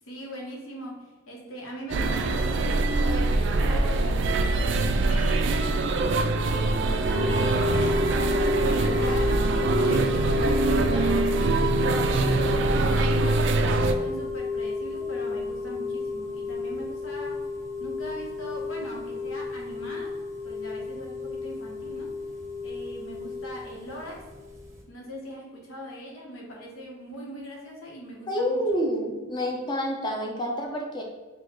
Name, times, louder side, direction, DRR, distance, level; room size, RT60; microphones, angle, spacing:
voice 1, 0.1-5.7 6.1-8.0 8.6-13.5 14.0-17.4 17.8-20.2 20.4-22.1 22.6-24.3 24.9-28.6, equal, 80° left, -2 dB, 1.1 m, -40 dB
sound 1, 1.9-14.0, right 3 dB, 60° right, 0.3 m, -24 dB
sound 2, 7.1-24.8, left 4 dB, 15° right, 0.7 m, -31 dB
voice 2, 28.3-31.0, equal, 20° left, 1 dB, 0.6 m, -28 dB
5.0 x 2.3 x 3.7 m, 1.3 s
head